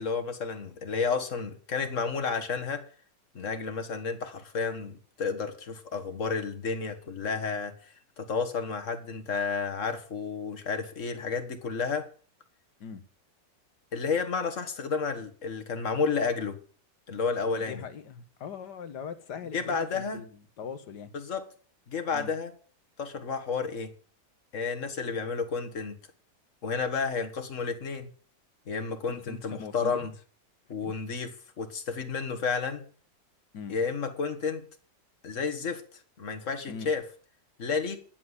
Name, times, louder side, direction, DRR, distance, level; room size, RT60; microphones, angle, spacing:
voice 1, 0.0-2.9 3.3-12.1 13.9-16.6 17.1-17.8 19.5-20.2 21.1-21.5 21.9-22.5 23.0-23.9 24.5-26.0 26.6-28.1 28.7-30.1 30.7-32.8 33.7-34.6 35.2-35.8 36.2-37.0 37.6-38.0, left 5 dB, 45° left, 1.9 m, -31 dB
voice 2, 17.5-20.3 20.6-21.1 22.1-22.3 29.1-30.1 30.8-30.9 33.5-33.8 36.7-36.9, left 6 dB, 65° left, 1.9 m, -40 dB
11.0 x 7.6 x 9.7 m
omnidirectional pair, 1.9 m